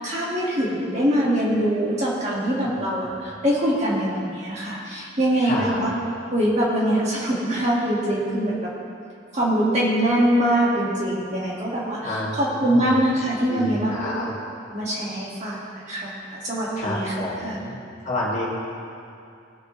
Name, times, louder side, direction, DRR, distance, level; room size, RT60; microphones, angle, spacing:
voice 1, 0.0-5.9 6.3-8.7 9.3-13.9 14.7-17.1 17.4-17.6, right 1 dB, 35° right, -6 dB, 1.9 m, -23 dB
voice 2, 5.4-5.9 12.0-13.0 13.2-14.3 16.8-17.8 18.1-18.5, left 1 dB, 35° left, -6 dB, 2.2 m, -29 dB
18.0 x 6.8 x 3.2 m, 2.4 s
head